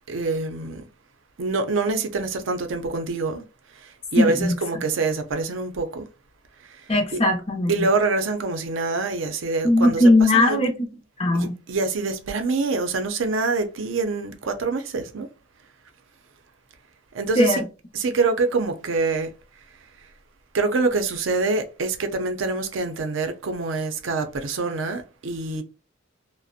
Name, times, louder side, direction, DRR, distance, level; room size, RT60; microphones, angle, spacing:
voice 1, 0.1-0.8 1.4-3.4 3.7-6.1 6.6-7.2 7.7-10.6 11.3-15.3 17.1-17.6 17.9-19.3 20.5-25.6, right 3 dB, 75° right, 0.5 m, -25 dB
voice 2, 4.2-4.5 6.9-7.7 9.6-10.9 11.2-11.5 17.4-17.6, left 1 dB, 30° left, 0.5 m, -18 dB
2.4 x 2.0 x 2.5 m
head